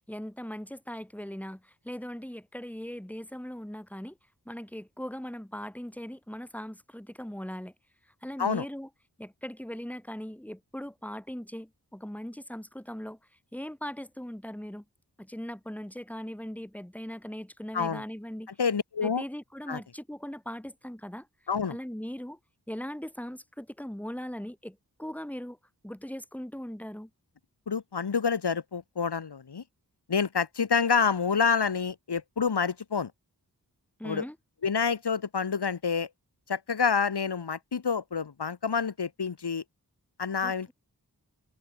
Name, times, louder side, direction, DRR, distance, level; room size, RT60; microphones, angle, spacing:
voice 1, 0.1-4.2 4.5-7.7 8.2-8.9 9.2-13.2 13.5-14.8 15.2-18.5 19.0-21.3 21.7-22.4 22.7-25.6 25.8-27.1 34.0-34.3 40.4-40.7, equal, 5° left, 3.0 m, -39 dB
voice 2, 18.6-19.2 19.7-19.8 21.5-21.8 27.7-29.6 30.1-33.1 34.0-34.3 34.6-36.1 36.5-39.6 40.2-40.7, left 6 dB, 90° left, 2.3 m, -28 dB
wide cardioid pair, 50°, 39 cm